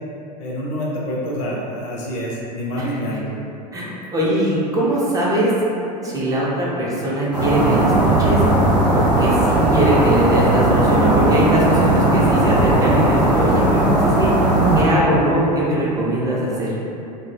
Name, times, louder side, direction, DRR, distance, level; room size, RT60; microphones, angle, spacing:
voice 1, 0.4-3.3, equal, 50° left, -4 dB, 0.5 m, -26 dB
voice 2, 3.7-5.5 6.0-8.4 8.9-13.7 13.9-14.3 14.7-16.7, right 1 dB, 15° right, -6 dB, 0.5 m, -21 dB
sound 1, 7.3-14.8, right 1 dB, 85° right, 0.9 m, -17 dB
2.1 x 2.0 x 3.0 m, 2.8 s
figure-of-eight pair, 80°, 21 cm